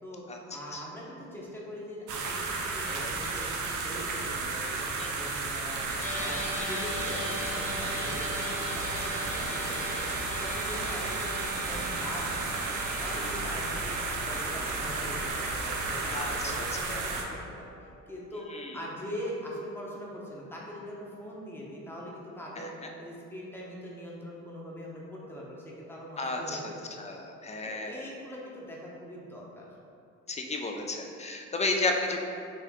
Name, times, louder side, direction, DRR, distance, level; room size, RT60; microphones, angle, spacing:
voice 1, 0.0-5.9 6.2-10.0 10.4-12.5 13.0-14.0 14.2-17.7 18.1-22.7 23.0-26.9 27.6-29.7, equal, 5° left, -4 dB, 0.8 m, -42 dB
sound 1, 2.1-17.2, right 3 dB, 75° right, 0.6 m, -33 dB
sound 2, 5.7-16.6, right 1 dB, 30° right, 0.7 m, -45 dB
sound 3, 6.0-18.4, left 1 dB, 85° left, 1.4 m, -41 dB
voice 2, 16.1-17.2 18.5-18.7 22.6-22.7 26.2-26.7 27.0-28.0 30.3-32.3, left 2 dB, 25° left, 2 dB, 0.4 m, -33 dB
4.3 x 2.5 x 3.6 m, 2.6 s
cardioid pair, 90°, 30 cm